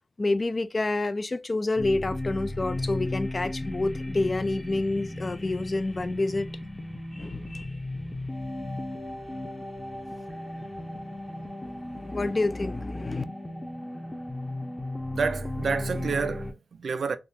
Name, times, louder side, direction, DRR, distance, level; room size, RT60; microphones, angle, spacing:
voice 1, 0.2-6.5 7.1-7.8 11.6-13.2, left 2 dB, 35° left, 0.3 m, -28 dB
sound 1, 1.8-16.5, left 1 dB, 10° left, 0.7 m, -35 dB
voice 2, 15.2-17.2, right 5 dB, 65° right, 0.3 m, -29 dB
3.6 x 2.3 x 2.7 m
cardioid pair, 80°, 0 cm